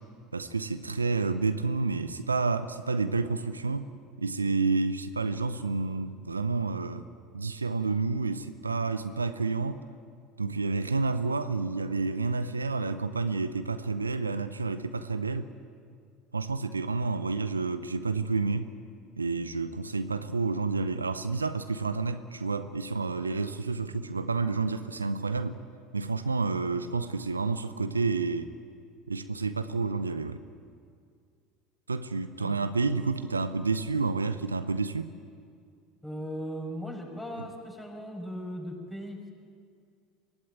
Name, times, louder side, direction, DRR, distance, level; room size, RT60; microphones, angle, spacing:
voice 1, 0.3-3.9 4.2-7.1 7.3-9.8 10.4-15.5 16.3-18.7 19.2-25.6 25.9-28.5 29.1-30.4 31.9-35.1, right 4 dB, 90° right, 11 dB, 0.7 m, -29 dB
voice 2, 36.0-39.3, equal, 10° left, 1 dB, 5.9 m, -38 dB
23.5 x 16.0 x 9.1 m, 2.2 s
figure-of-eight pair, 70°, 0 cm